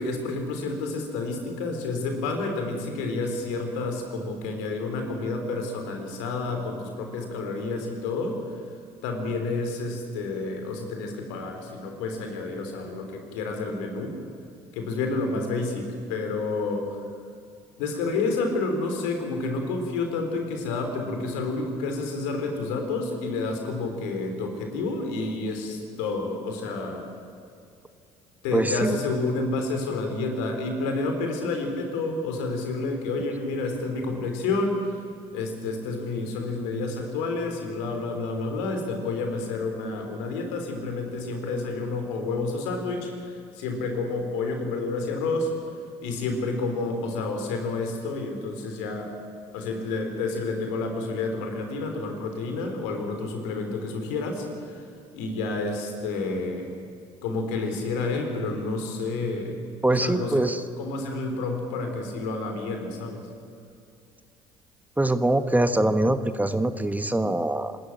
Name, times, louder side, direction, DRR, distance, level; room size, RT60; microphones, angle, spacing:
voice 1, 0.0-8.6 9.0-14.2 14.7-17.1 17.8-27.1 28.4-35.0 35.3-45.5 46.0-49.1 49.5-54.9 55.1-56.7 57.2-59.6 59.9-60.4 60.8-63.3, left 3 dB, 80° left, 4 dB, 3.6 m, -29 dB
voice 2, 28.5-29.0 59.8-60.6 65.0-67.8, right 1 dB, 10° right, 10 dB, 1.2 m, -23 dB
25.5 x 13.0 x 8.8 m, 2.3 s
hypercardioid pair, 60°, 15 cm